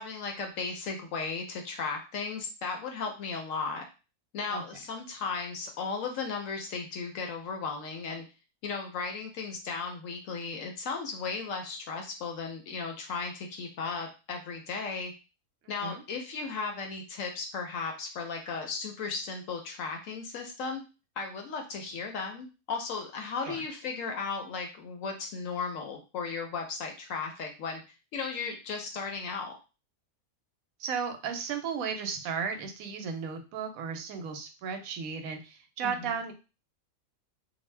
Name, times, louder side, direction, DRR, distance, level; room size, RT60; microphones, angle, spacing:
voice 1, 0.0-3.8 4.3-8.2 8.6-15.1 15.7-20.8 21.2-27.8 28.1-29.6 35.8-36.2, left 4 dB, 70° left, 3 dB, 0.9 m, -35 dB
voice 2, 30.8-36.3, right 6 dB, 75° right, 5 dB, 1.0 m, -35 dB
2.6 x 2.1 x 3.1 m, 0.31 s
omnidirectional pair, 1.6 m